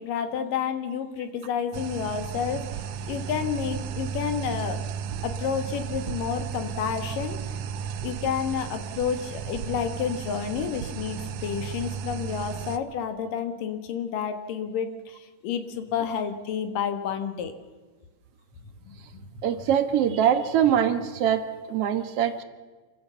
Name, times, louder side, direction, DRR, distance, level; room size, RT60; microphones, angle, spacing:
voice 1, 0.0-4.8 5.2-7.4 8.0-17.5 18.9-19.0, left 7 dB, 80° left, 8 dB, 3.3 m, -30 dB
sound 1, 1.7-12.8, right 7 dB, 75° right, 2.2 m, -34 dB
voice 2, 19.4-22.4, right 9 dB, 55° right, 9 dB, 2.1 m, -23 dB
27.5 x 14.5 x 7.0 m, 1.4 s
omnidirectional pair, 3.8 m